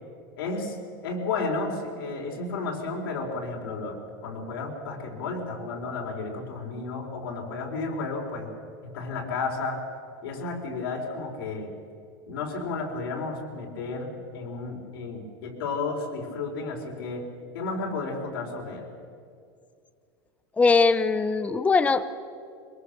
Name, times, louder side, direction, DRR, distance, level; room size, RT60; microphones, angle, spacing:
voice 1, 0.4-0.8 1.0-8.5 8.9-9.8 10.2-11.7 12.2-17.3 17.5-18.9, left 3 dB, 90° left, 0 dB, 4.2 m, -32 dB
voice 2, 20.6-22.1, left 4 dB, 10° left, 12 dB, 0.6 m, -21 dB
22.5 x 21.5 x 6.7 m, 2.4 s
supercardioid pair, 145°, 12 cm